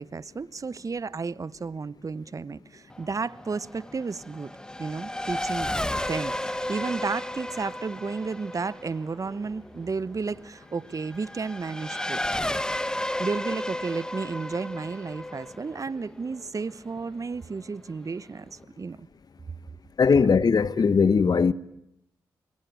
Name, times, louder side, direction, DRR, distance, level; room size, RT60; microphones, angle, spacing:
voice 1, 0.0-4.5 4.8-5.7 6.1-12.2 13.2-19.1, right 4 dB, 45° right, 1.0 m, -32 dB
Race car auto racing / Accelerating revving vroom, 2.9-17.0, left 1 dB, 10° left, 1.6 m, -33 dB
voice 2, 20.0-21.5, left 5 dB, 55° left, 1.3 m, -19 dB
26.0 x 22.5 x 9.5 m
supercardioid pair, 50°, 8 cm